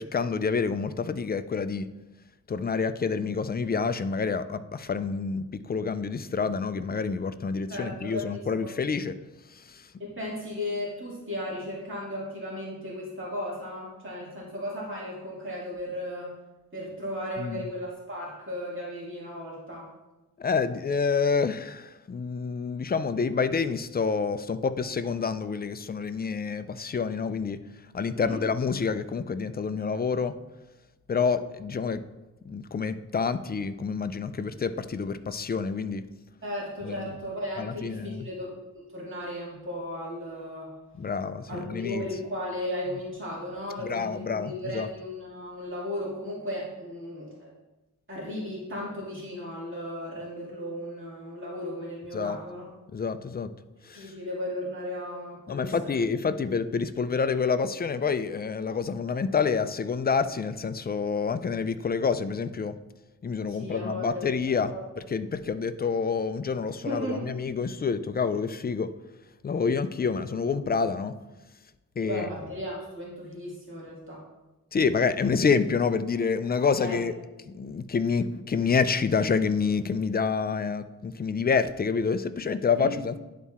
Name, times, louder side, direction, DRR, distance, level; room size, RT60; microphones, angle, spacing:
voice 1, 0.0-1.9 2.5-9.1 9.5-9.9 17.4-17.6 20.4-27.6 27.9-30.3 31.1-32.0 32.5-36.0 36.8-37.0 37.6-38.3 41.0-42.1 43.8-44.9 52.1-52.4 52.9-53.5 53.8-54.1 55.5-62.8 63.2-64.7 65.1-68.9 69.4-71.2 72.0-72.3 74.7-77.1 77.5-83.2, left 5 dB, 25° left, 12 dB, 0.4 m, -28 dB
voice 2, 7.7-8.7 10.0-16.3 16.7-19.9 28.1-28.4 36.4-40.7 41.5-47.5 48.1-52.7 53.9-55.9 63.5-64.8 66.8-67.3 72.0-74.2 76.8-77.0 82.7-82.9, left 1 dB, 35° right, -6 dB, 2.4 m, -35 dB
10.5 x 4.1 x 3.6 m, 1.1 s
cardioid pair, 85°, 36 cm